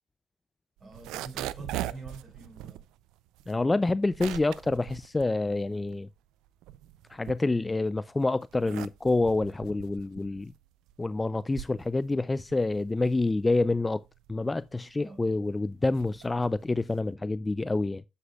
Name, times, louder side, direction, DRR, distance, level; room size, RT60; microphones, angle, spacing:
voice 1, 0.8-2.8 15.0-15.3, right 2 dB, 35° right, 5.6 m, -45 dB
sound 1, 0.8-6.1 6.5-7.9 8.4-17.1, right 14 dB, 85° right, 0.4 m, -41 dB
voice 2, 3.5-6.1 7.1-10.5 11.0-14.0 14.3-18.0, left 2 dB, 20° left, 0.4 m, -27 dB
8.1 x 8.0 x 2.3 m
cardioid pair, 85°, 0 cm